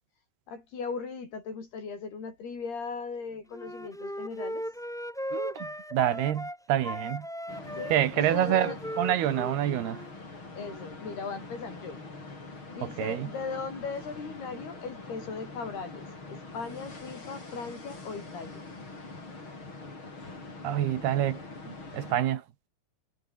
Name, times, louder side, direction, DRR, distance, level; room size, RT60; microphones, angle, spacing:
voice 1, 0.5-4.6 7.7-8.8 10.6-12.0 12.7-18.6 19.3-19.4, left 5 dB, 85° left, 8.5 m, -38 dB
Wind instrument woodwind instrument, 3.5-6.6 6.8-10.1, equal, ahead, 2.3 m, -37 dB
voice 2, 5.3-7.3 7.9-10.0 12.8-13.3 20.6-21.4 21.9-22.4, right 11 dB, 85° right, 3.8 m, -27 dB
sound 1, 7.5-22.1, left 3 dB, 30° left, 6.7 m, -44 dB
omnidirectional pair, 4.4 m